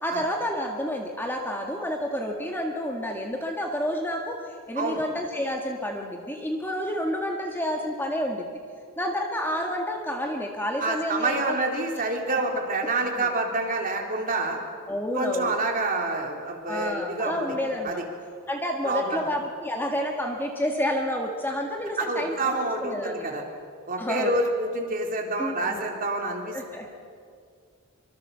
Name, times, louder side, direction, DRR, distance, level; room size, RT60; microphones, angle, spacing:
voice 1, 0.0-8.5 9.0-11.6 12.3-12.4 13.2-13.3 14.9-15.6 16.7-18.0 18.5-22.3 22.8-23.4 24.0-24.4 25.4-25.9 26.5-26.9, equal, 10° left, 1 dB, 1.8 m, -29 dB
voice 2, 10.8-14.6 15.1-17.6 17.8-18.0 18.8-19.3 22.0-23.4 23.9-26.6, right 2 dB, 40° right, 1 dB, 3.6 m, -27 dB
25.0 x 25.0 x 6.9 m, 2.2 s
head